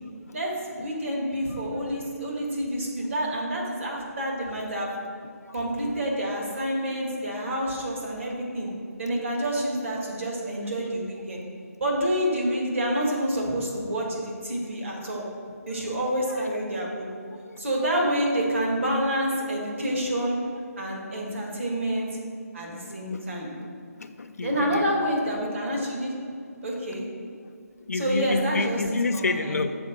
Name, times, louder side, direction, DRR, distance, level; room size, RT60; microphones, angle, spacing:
voice 1, 0.3-4.9 5.5-8.7 9.0-11.4 11.8-15.3 15.7-17.1 17.6-20.4 20.8-22.1 22.5-23.5 24.4-26.1 26.6-27.0 27.9-28.8 29.1-29.6, equal, 50° right, -2 dB, 1.8 m, -28 dB
voice 2, 17.3-17.6 22.8-23.3 23.6-23.7 24.0-24.9 27.5-27.6 27.9-29.8, left 3 dB, 65° left, 9 dB, 0.5 m, -30 dB
7.1 x 4.6 x 6.5 m, 2.4 s
hypercardioid pair, 175°, 9 cm